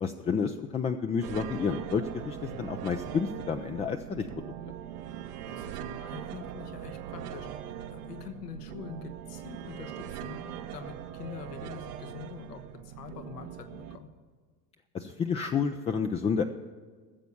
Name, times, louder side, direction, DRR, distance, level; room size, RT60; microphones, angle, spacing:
voice 1, 0.0-4.3 14.9-16.4, left 6 dB, 15° left, 5 dB, 0.3 m, -30 dB
sound 1, 1.2-14.0, right 10 dB, 75° right, 1.1 m, -41 dB
voice 2, 5.5-14.1, left 7 dB, 85° left, 7 dB, 1.4 m, -45 dB
15.0 x 6.9 x 7.0 m, 1.5 s
hypercardioid pair, 85°, 47 cm